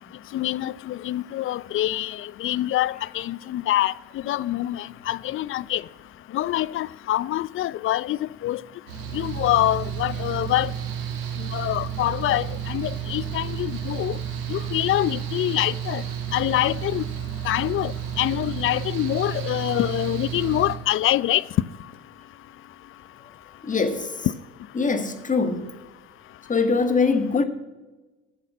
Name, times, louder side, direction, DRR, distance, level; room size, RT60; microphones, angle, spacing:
voice 1, 0.3-3.9 4.2-5.8 6.3-8.6 9.1-10.7 11.5-14.2 14.5-16.0 16.3-17.0 17.4-21.4, left 14 dB, 45° left, 0.5 m, -25 dB
Mechanical fan, 8.9-20.8, right 9 dB, 80° right, 1.7 m, -31 dB
voice 2, 23.6-24.3 24.7-25.7 26.5-27.4, left 4 dB, 25° left, 1.7 m, -23 dB
12.5 x 7.6 x 6.2 m
hypercardioid pair, 70°, 30 cm